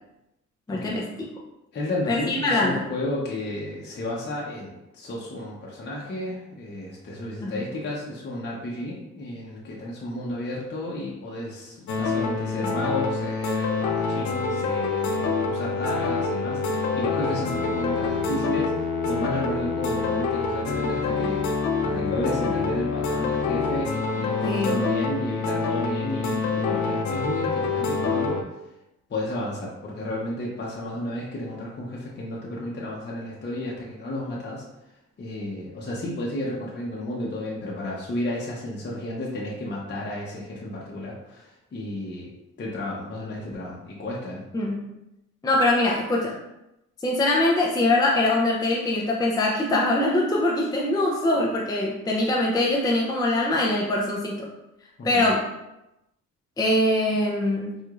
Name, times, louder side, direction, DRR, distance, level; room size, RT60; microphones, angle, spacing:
voice 1, 0.7-1.1 2.1-2.8 7.4-7.6 24.4-24.8 44.5-44.8 45.4-46.4 47.0-54.5 55.0-55.4 56.6-57.7, left 2 dB, 15° left, -3 dB, 0.5 m, -23 dB
voice 2, 1.7-21.4 21.8-28.4 29.1-34.6 35.2-42.3 42.6-44.4 55.0-55.2, left 1 dB, 35° left, -4 dB, 0.9 m, -32 dB
sound 1, 11.9-28.4, left 4 dB, 70° left, 0.5 m, -26 dB
4.6 x 2.5 x 2.4 m, 0.90 s
cardioid pair, 90°, 30 cm